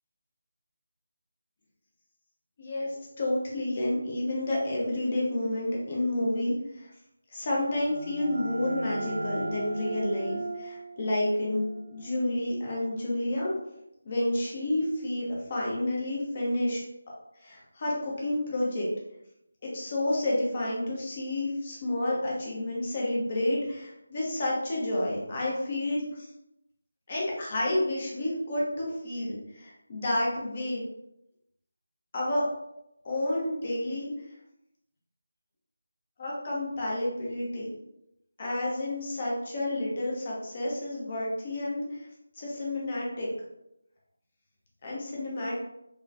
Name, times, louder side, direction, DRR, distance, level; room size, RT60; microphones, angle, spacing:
voice 1, 2.6-6.9 7.3-13.5 14.0-16.8 17.4-18.9 19.6-26.3 27.1-30.8 32.1-32.4 33.0-34.1 36.2-37.7 38.4-42.1 42.4-43.3 44.8-45.6, left 1 dB, 35° left, -4 dB, 0.9 m, -30 dB
sound 1, 7.5-13.0, right 2 dB, 70° right, 0.4 m, -39 dB
2.9 x 2.1 x 2.5 m, 0.84 s
figure-of-eight pair, 165°, 0 cm